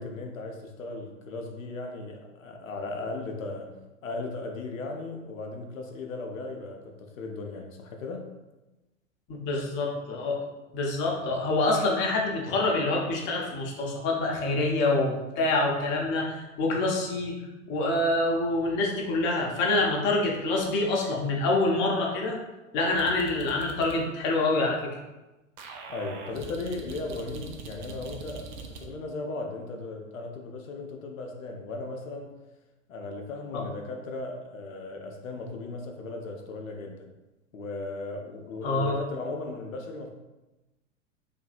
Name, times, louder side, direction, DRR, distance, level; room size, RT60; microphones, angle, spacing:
voice 1, 0.0-3.7 4.0-8.2 25.9-32.4 32.9-37.1 37.5-40.1, left 3 dB, 80° left, 2 dB, 0.5 m, -37 dB
voice 2, 9.3-10.4 10.7-17.4 17.7-22.4 22.7-24.9 33.5-33.6 38.6-39.0, left 2 dB, 30° left, -1 dB, 0.5 m, -26 dB
sound 1, 22.9-24.0 25.6-28.8, right 3 dB, 40° right, 0.4 m, -42 dB
2.6 x 2.5 x 2.4 m, 1.1 s
figure-of-eight pair, 90°, 39 cm